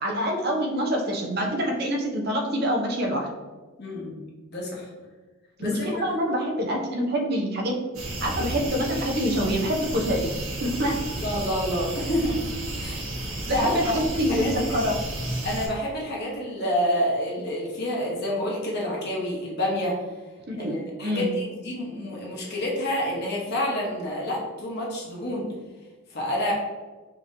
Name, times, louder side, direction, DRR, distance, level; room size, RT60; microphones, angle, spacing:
voice 1, 0.0-3.3 5.6-7.8 8.2-10.3 10.6-11.0 13.5-15.0 20.5-21.3, equal, 45° right, 0 dB, 0.8 m, -26 dB
voice 2, 3.8-4.2 4.5-4.9 5.6-6.2 11.1-12.5 12.8-14.7 15.4-20.0 20.6-25.5 26.1-26.5, equal, 50° left, -3 dB, 1.1 m, -28 dB
sound 1, 7.9-15.7, right 1 dB, 70° right, 1.4 m, -32 dB
5.4 x 3.0 x 2.7 m, 1.3 s
head